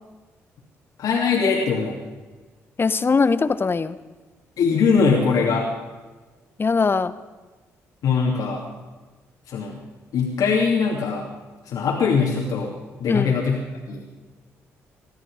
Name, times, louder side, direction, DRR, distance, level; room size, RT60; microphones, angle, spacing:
voice 1, 1.0-2.0 4.6-5.7 8.0-8.6 9.5-9.8 10.1-11.3 11.6-13.6 13.9-14.1, left 5 dB, 70° left, -2 dB, 2.9 m, -21 dB
voice 2, 2.8-4.0 6.6-7.1 13.1-13.3, left 4 dB, 35° left, 14 dB, 1.1 m, -21 dB
21.0 x 13.5 x 4.9 m, 1.3 s
hypercardioid pair, 50°, 7 cm